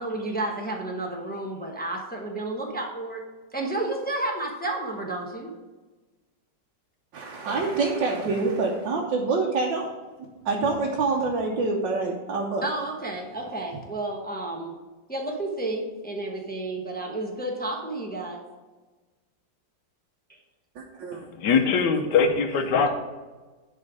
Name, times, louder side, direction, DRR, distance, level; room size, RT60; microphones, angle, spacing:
voice 1, 0.0-3.2 3.5-5.5 12.6-14.7 15.1-18.4, right 2 dB, 5° left, 0 dB, 0.7 m, -31 dB
voice 2, 7.1-9.9 10.2-12.7 20.8-21.6, right 3 dB, 80° right, -2 dB, 1.7 m, -26 dB
voice 3, 21.4-22.9, left 5 dB, 70° left, 6 dB, 1.5 m, -21 dB
11.0 x 4.3 x 5.0 m, 1.2 s
omnidirectional pair, 2.0 m